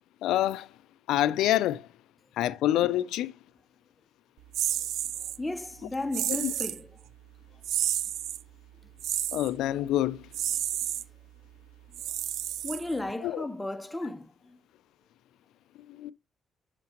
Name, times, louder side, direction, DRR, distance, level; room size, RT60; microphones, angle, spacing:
voice 1, 0.2-0.7 1.1-1.9 2.4-3.3 6.3-6.5 9.3-10.2 13.2-13.5 15.9-16.1, left 13 dB, 85° left, 0.3 m, -26 dB
sound 1, 4.5-5.4 6.1-6.8 7.6-8.4 9.0-9.5 10.3-11.0 11.9-13.1, right 11 dB, 80° right, 0.3 m, -31 dB
voice 2, 5.4-7.0 12.6-14.6, left 2 dB, 10° left, 0.7 m, -34 dB
9.5 x 5.8 x 2.9 m
cardioid pair, 90°, 0 cm